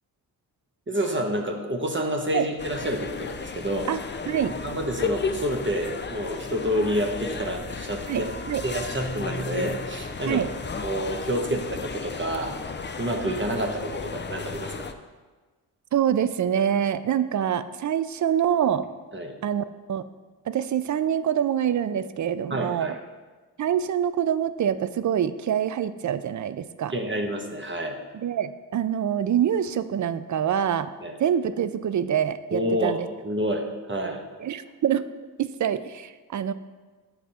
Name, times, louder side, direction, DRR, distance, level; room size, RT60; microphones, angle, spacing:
voice 1, 0.9-3.9 4.6-8.3 8.6-10.4 10.8-12.6 13.0-14.9 19.1-19.3 22.5-23.0 26.9-28.0 31.0-31.1 32.5-32.9 33.2-34.2, equal, 30° right, 2 dB, 1.1 m, -28 dB
sound 1, 2.6-14.9, left 4 dB, 25° left, 0.5 m, -34 dB
voice 2, 8.1-8.6 10.3-10.5 15.9-18.9 19.4-20.0 20.5-22.9 23.6-26.9 28.1-30.9 31.2-33.1 34.4-35.0 35.4-36.5, right 9 dB, 45° right, 13 dB, 0.5 m, -25 dB
8.3 x 4.1 x 4.3 m, 1.3 s
supercardioid pair, 45°, 40 cm